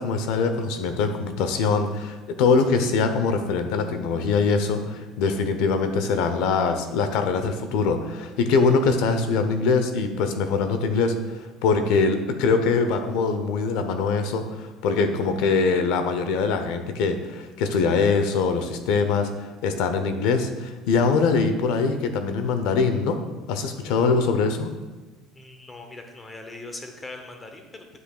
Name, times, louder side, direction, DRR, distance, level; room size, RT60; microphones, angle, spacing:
voice 1, 0.0-23.2 23.5-24.7, left 4 dB, 70° left, 8 dB, 0.8 m, -23 dB
voice 2, 25.3-28.0, left 2 dB, 15° left, 4 dB, 0.8 m, -40 dB
9.7 x 7.7 x 2.4 m, 1.2 s
cardioid pair, 165°, 0 cm